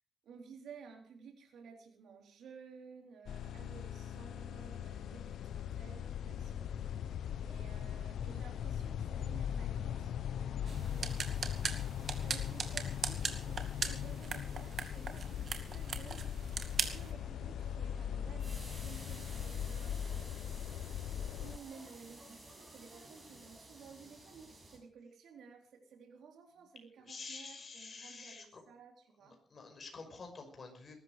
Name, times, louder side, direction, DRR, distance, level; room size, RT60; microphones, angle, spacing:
voice 1, 0.2-6.8 7.4-11.8 12.2-16.3 16.9-20.4 21.4-29.4, right 6 dB, 85° right, 3 dB, 3.7 m, -55 dB
sound 1, 3.3-21.6, left 9 dB, 85° left, 0.8 m, -40 dB
sound 2, 10.7-17.1, right 5 dB, 50° right, 2.3 m, -40 dB
sound 3, 12.0-24.8, right 1 dB, 20° right, 6.7 m, -55 dB
voice 2, 27.1-28.6 29.5-31.0, left 4 dB, 40° left, 4 dB, 5.6 m, -48 dB
20.5 x 12.5 x 5.0 m, 0.43 s
cardioid pair, 130°, 0 cm